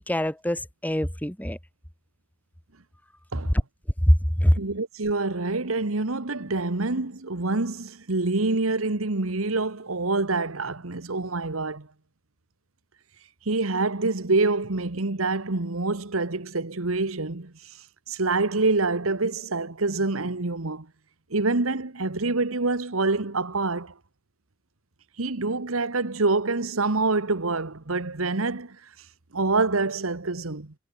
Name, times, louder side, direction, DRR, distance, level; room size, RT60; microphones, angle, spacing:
voice 1, 0.0-1.6 4.1-4.6, equal, 10° left, 1.6 m, -23 dB
voice 2, 4.6-11.9 13.4-17.8 18.1-20.9 21.3-23.9 25.2-28.8 29.3-30.7, right 3 dB, 90° right, 1.6 m, -26 dB
head